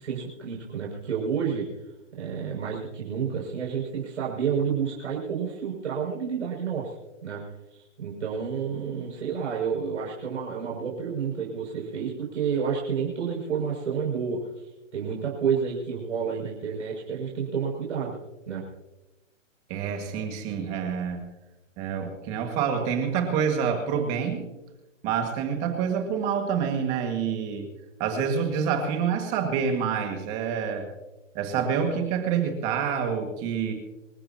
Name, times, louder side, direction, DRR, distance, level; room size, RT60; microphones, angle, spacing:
voice 1, 0.0-1.7 2.2-6.9 7.2-7.4 7.7-18.2 18.5-18.6, right 6 dB, 65° right, -2 dB, 6.6 m, -30 dB
voice 2, 19.7-21.2 21.8-24.5 25.0-27.7 28.0-30.9 31.3-33.7, right 7 dB, 20° right, 4 dB, 1.9 m, -27 dB
27.5 x 14.0 x 2.9 m, 1.0 s
hypercardioid pair, 165°, 38 cm